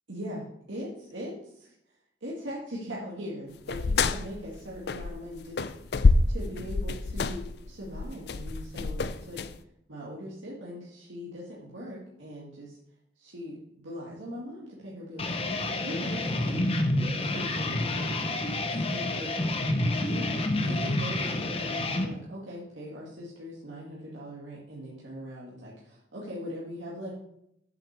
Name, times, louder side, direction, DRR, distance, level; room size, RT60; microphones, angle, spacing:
voice 1, 0.1-0.4 0.7-1.7 2.2-5.7 6.3-9.4 9.9-12.8 13.2-18.2 18.7-19.5 19.8-27.1, equal, 85° right, -5 dB, 1.9 m, -40 dB
sound 1, 3.7-5.3 5.6-9.5, left 3 dB, 60° left, 0.4 m, -26 dB
sound 2, 15.2-22.1, left 2 dB, 30° left, 0.9 m, -29 dB
7.8 x 5.7 x 6.6 m, 0.76 s
head